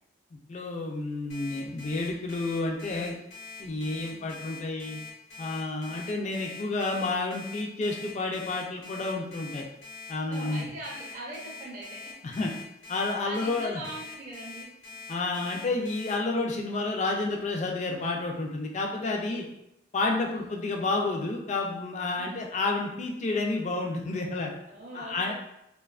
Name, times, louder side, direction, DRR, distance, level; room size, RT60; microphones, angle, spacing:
voice 1, 0.3-3.1 3.6-5.0 5.4-9.7 10.1-10.7 12.2-12.5 12.9-13.8 15.1-19.4 19.9-24.5 24.9-25.3, left 3 dB, 35° left, 1 dB, 0.3 m, -30 dB
Alarm, 1.3-16.1, left 5 dB, 75° left, 0.8 m, -44 dB
voice 2, 10.3-12.1 13.2-14.7 20.3-20.5 22.2-22.5 24.7-25.3, right 2 dB, 45° right, -3 dB, 0.6 m, -41 dB
2.7 x 2.2 x 2.3 m, 0.81 s
head